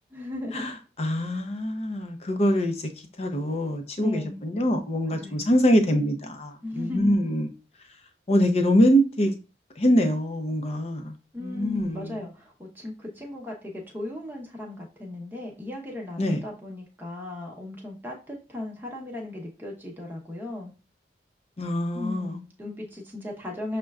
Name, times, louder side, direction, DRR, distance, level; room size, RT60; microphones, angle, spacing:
voice 1, 0.1-0.6 4.0-4.4 5.1-5.5 6.6-7.4 11.3-20.7 21.9-23.8, left 2 dB, 10° right, 0.8 m, -36 dB
voice 2, 1.0-2.8 3.2-7.5 8.3-9.3 9.8-11.1 11.4-12.2 16.2-16.4 21.6-22.4, equal, 35° left, 0.5 m, -24 dB
6.3 x 2.2 x 2.3 m
head